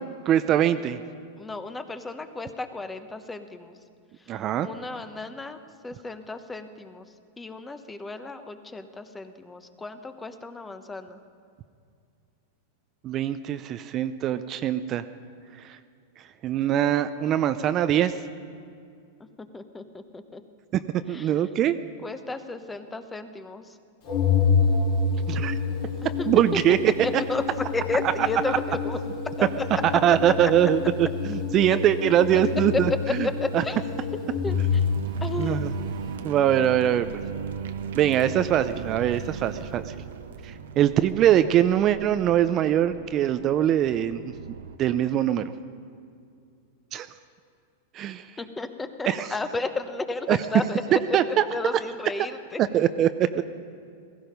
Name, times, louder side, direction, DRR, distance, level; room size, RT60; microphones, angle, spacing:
voice 1, 0.3-1.0 4.3-4.7 13.0-15.0 15.7-15.8 16.4-18.1 21.1-21.8 25.3-25.6 26.3-26.9 28.5-28.6 30.0-33.3 33.5-33.6 35.4-35.7 36.2-37.1 37.9-39.9 40.4-44.2 44.8-45.5 46.9-47.1 47.9-48.2 49.1-49.3 50.3-50.4 51.1-51.4 52.6-53.4, right 11 dB, 35° right, 11 dB, 0.6 m, -22 dB
voice 2, 1.4-3.7 4.6-7.0 7.4-11.2 19.5-20.4 21.1-21.3 22.0-23.6 26.2-26.3 27.3-27.4 27.7-29.0 29.4-29.8 30.1-30.5 33.4-33.8 34.4-34.6 35.2-35.7 48.4-52.6, left 3 dB, 10° left, 9 dB, 1.0 m, -33 dB
Organ, 24.1-35.1, left 5 dB, 60° left, 3.4 m, -27 dB
sound 1, 34.4-44.8, right 7 dB, 75° right, 0.9 m, -37 dB
16.0 x 15.5 x 5.3 m, 2.3 s
hypercardioid pair, 115°, 0 cm